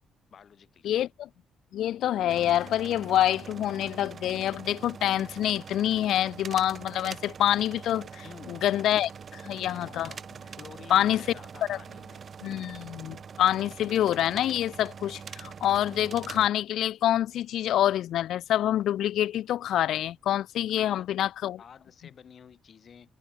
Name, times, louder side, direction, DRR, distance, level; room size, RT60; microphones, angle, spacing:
voice 1, 0.3-0.9 8.2-9.3 10.5-12.2 20.7-21.1 21.6-23.1, left 7 dB, 35° left, 2.4 m, -50 dB
voice 2, 0.8-1.3 1.7-9.1 9.4-10.2 10.9-11.2 11.7-11.8 12.4-21.6, left 12 dB, 60° left, 0.4 m, -26 dB
sound 1, 2.3-16.5, right 6 dB, 30° right, 0.7 m, -44 dB
cardioid pair, 175°, 0 cm